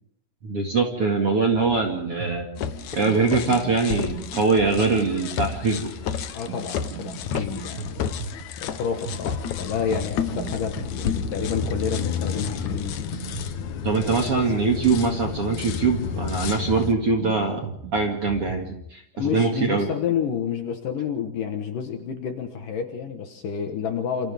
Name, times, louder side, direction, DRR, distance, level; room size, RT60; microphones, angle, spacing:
voice 1, 0.4-2.5 2.9-5.9 13.8-19.9, right 4 dB, 45° right, 2 dB, 2.3 m, -23 dB
sound 1, 2.0-18.8, right 5 dB, 70° right, 3.6 m, -38 dB
sound 2, 2.6-16.9, left 8 dB, 85° left, 1.6 m, -31 dB
voice 2, 6.3-8.1 8.6-13.0 19.1-24.3, left 7 dB, 60° left, 5 dB, 2.5 m, -29 dB
28.0 x 27.5 x 3.6 m, 0.68 s
omnidirectional pair, 5.0 m